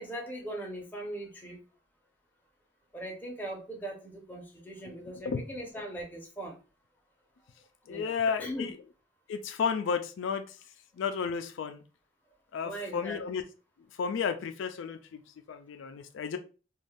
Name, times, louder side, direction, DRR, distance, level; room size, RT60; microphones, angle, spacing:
voice 1, 0.0-1.6 2.9-6.6 7.9-8.1 8.4-8.7 12.6-13.2, right 1 dB, 10° left, -1 dB, 0.6 m, -39 dB
voice 2, 4.9-5.4 7.9-8.7 9.3-10.6 11.0-11.8 12.5-13.4 14.0-15.2 15.5-16.4, left 6 dB, 75° left, 8 dB, 0.3 m, -33 dB
2.6 x 2.3 x 3.3 m, 0.34 s
head